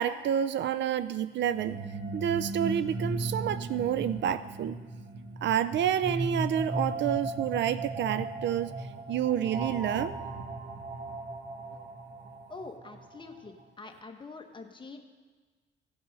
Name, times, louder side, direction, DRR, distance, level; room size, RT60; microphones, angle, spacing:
voice 1, 0.0-1.8 2.1-4.8 5.4-8.7 9.1-10.1, right 10 dB, 65° right, 14 dB, 0.4 m, -29 dB
sound 1, 1.4-13.3, right 2 dB, 50° right, 1.2 m, -36 dB
voice 2, 12.5-15.0, left 3 dB, 25° left, 4 dB, 1.2 m, -45 dB
16.0 x 5.6 x 5.3 m, 1.4 s
cardioid pair, 90°, 20 cm